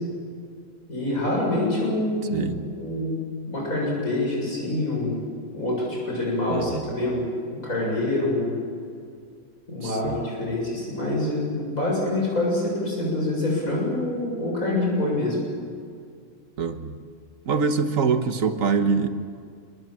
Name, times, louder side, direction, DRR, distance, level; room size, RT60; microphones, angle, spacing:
voice 1, 0.9-2.5 2.7-3.2 3.4-5.2 5.5-7.2 7.5-8.6 9.7-15.4, left 2 dB, 90° left, -3 dB, 8.0 m, -26 dB
voice 2, 2.3-2.7 6.5-6.9 9.8-10.3 16.6-17.0 17.5-19.1, right 5 dB, 75° right, 7 dB, 1.8 m, -24 dB
26.5 x 23.5 x 7.6 m, 2.3 s
omnidirectional pair, 1.4 m